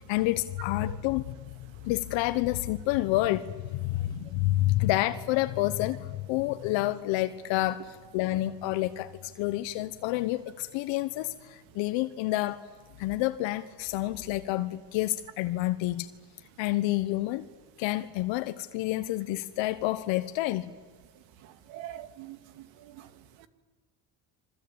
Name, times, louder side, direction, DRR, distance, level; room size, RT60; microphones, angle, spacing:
voice 1, 0.0-1.5 1.8-12.6 13.0-16.1 16.6-17.5 17.8-20.7, left 16 dB, 75° left, 10 dB, 1.3 m, -29 dB
voice 2, 21.7-23.1 23.4-23.5, right 12 dB, 75° right, 11 dB, 2.3 m, -44 dB
27.5 x 24.5 x 8.9 m, 1.5 s
supercardioid pair, 105°, 46 cm